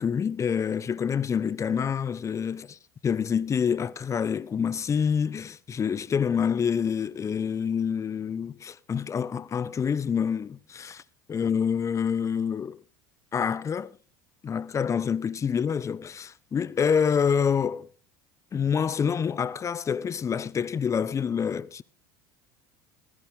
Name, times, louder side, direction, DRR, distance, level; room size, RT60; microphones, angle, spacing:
voice 1, 0.0-2.8 3.0-11.0 11.3-12.8 13.3-13.9 14.4-17.9 18.5-21.8, left 7 dB, 30° left, 0.8 m, -27 dB
16.0 x 13.5 x 3.8 m
hypercardioid pair, 80°, 10 cm